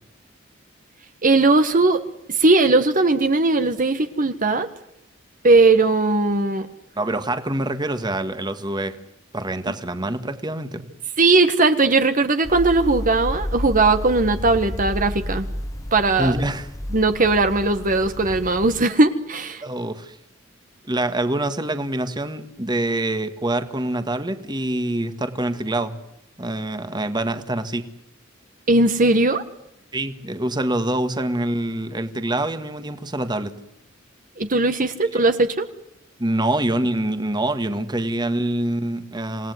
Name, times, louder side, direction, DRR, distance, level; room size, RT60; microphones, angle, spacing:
voice 1, 1.2-2.0 2.3-4.7 5.4-6.7 11.2-15.5 15.9-16.3 16.9-19.6 28.7-29.4 34.4-35.6, right 3 dB, 40° right, 1.5 m, -18 dB
voice 2, 7.0-9.0 9.3-10.9 16.2-16.7 19.6-20.2 20.9-26.0 26.4-27.8 29.9-33.5 35.1-35.2 36.2-39.5, right 1 dB, 20° right, 1.7 m, -25 dB
sound 1, 12.4-18.8, equal, 15° left, 1.0 m, -31 dB
27.5 x 18.5 x 9.5 m
head